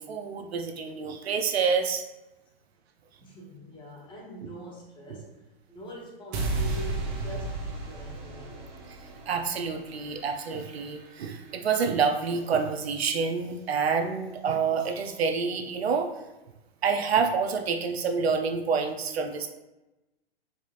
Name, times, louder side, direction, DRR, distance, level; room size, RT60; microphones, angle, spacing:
voice 1, 0.0-2.0 9.3-16.1 16.8-19.5, right 5 dB, 80° right, 5 dB, 0.6 m, -27 dB
voice 2, 3.2-5.4 5.7-8.7, right 1 dB, 15° left, -2 dB, 0.8 m, -44 dB
sound 1, 6.3-12.5, right 2 dB, 30° right, 0.7 m, -35 dB
4.9 x 2.4 x 2.4 m, 1.0 s
hypercardioid pair, 125°, 31 cm